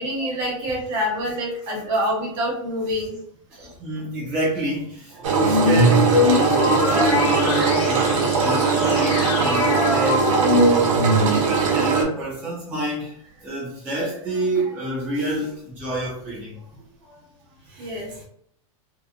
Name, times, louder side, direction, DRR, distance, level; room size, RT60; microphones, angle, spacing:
voice 1, 0.0-3.2 3.6-3.7 17.8-18.1, equal, 40° right, 0.9 m, -26 dB
voice 2, 3.6-10.9 11.2-16.6 17.1-17.2 17.7-18.2, right 1 dB, 10° right, 0.4 m, -28 dB
Engine, 5.2-12.0, right 5 dB, 70° right, 0.7 m, -21 dB
sound 1, 5.4-11.7, left 1 dB, 50° left, 0.7 m, -22 dB
2.7 x 2.0 x 2.4 m
supercardioid pair, 170°, 17 cm